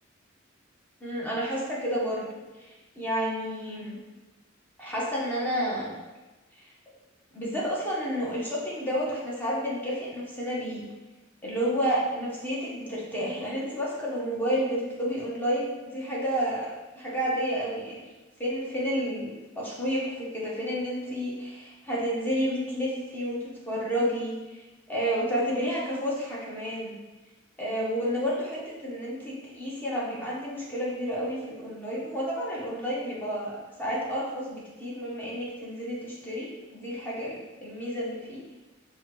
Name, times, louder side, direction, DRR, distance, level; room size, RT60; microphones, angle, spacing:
voice 1, 1.0-2.3 2.6-4.0 4.8-5.9 7.3-10.8 11.4-18.1 18.4-27.0 27.6-38.4, equal, 10° left, -6 dB, 0.8 m, -30 dB
5.6 x 2.2 x 2.9 m, 1.1 s
head